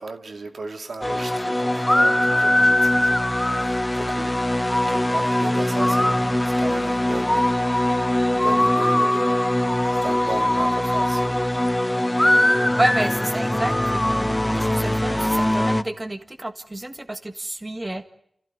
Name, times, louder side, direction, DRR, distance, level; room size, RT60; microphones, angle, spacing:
voice 1, 0.0-7.6 8.3-11.5, right 3 dB, 75° right, 2.4 m, -36 dB
sound 1, 1.0-15.8, left 1 dB, 15° left, 0.9 m, -21 dB
voice 2, 12.8-18.0, right 1 dB, 30° right, 1.6 m, -29 dB
30.0 x 15.5 x 9.3 m
cardioid pair, 50°, 0 cm